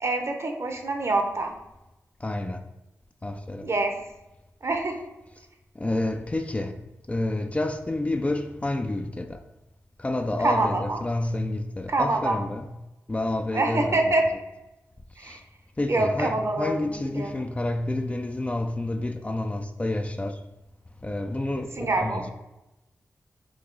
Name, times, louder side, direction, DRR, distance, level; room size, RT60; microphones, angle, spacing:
voice 1, 0.0-1.5 3.6-3.9 4.6-4.9 10.4-11.0 11.9-12.4 13.5-14.3 15.2-15.4 15.9-16.8 17.1-17.3 21.8-22.2, right 2 dB, 50° right, 0.8 m, -25 dB
voice 2, 2.2-2.6 3.2-3.7 5.8-6.7 7.1-9.4 10.0-12.7 13.1-14.0 15.2-15.4 15.8-20.4 21.0-22.3, left 2 dB, 20° left, 0.4 m, -29 dB
4.7 x 2.7 x 3.8 m
cardioid pair, 50°, 6 cm